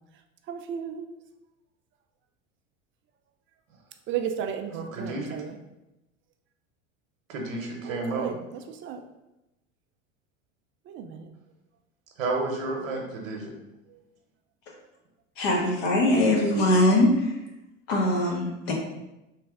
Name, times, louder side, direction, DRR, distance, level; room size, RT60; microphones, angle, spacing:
voice 1, 0.5-1.1 4.1-5.6 7.8-9.0 10.9-11.3 13.9-14.0, right 8 dB, 30° right, 6 dB, 0.4 m, -34 dB
voice 2, 4.7-5.4 7.3-8.3 12.2-13.5, right 3 dB, 70° right, 1 dB, 0.9 m, -31 dB
voice 3, 15.4-17.3 17.9-18.7, left 1 dB, 55° left, 0 dB, 1.2 m, -22 dB
3.2 x 3.2 x 3.5 m, 0.94 s
hypercardioid pair, 80°, 40 cm